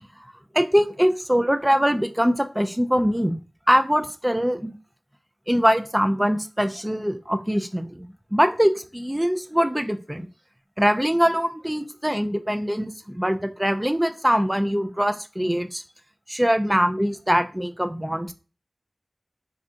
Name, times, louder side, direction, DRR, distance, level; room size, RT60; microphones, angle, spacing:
voice 1, 0.5-3.4 3.7-4.8 5.5-10.3 10.8-15.8 16.3-18.3, equal, 10° right, 9 dB, 0.3 m, -22 dB
2.5 x 2.4 x 3.8 m, 0.34 s
wide cardioid pair, 65°, 0 cm